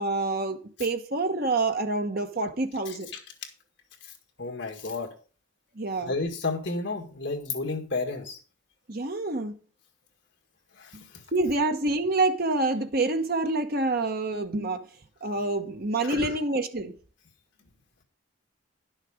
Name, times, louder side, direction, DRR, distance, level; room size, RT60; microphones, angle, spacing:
voice 1, 0.0-3.1 5.8-6.1 8.9-9.5 11.3-14.8 15.2-16.9, right 2 dB, 50° right, 1.1 m, -27 dB
voice 2, 2.9-3.2 4.4-5.1 6.1-8.4 10.8-11.0 16.0-16.4, left 3 dB, 65° left, 1.8 m, -32 dB
11.0 x 6.6 x 5.0 m
head